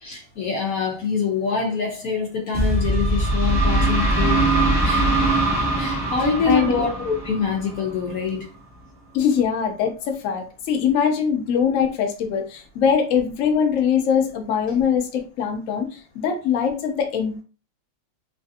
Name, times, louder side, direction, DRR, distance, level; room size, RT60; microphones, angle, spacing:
voice 1, 0.0-4.5 4.8-5.1 5.8-8.4, left 5 dB, 65° left, 1.0 m, -25 dB
sound 1, 2.5-8.2, right 2 dB, 5° right, 0.3 m, -21 dB
voice 2, 6.2-6.8 9.1-17.4, left 7 dB, 90° left, 0.7 m, -22 dB
3.2 x 2.4 x 2.6 m
omnidirectional pair, 2.0 m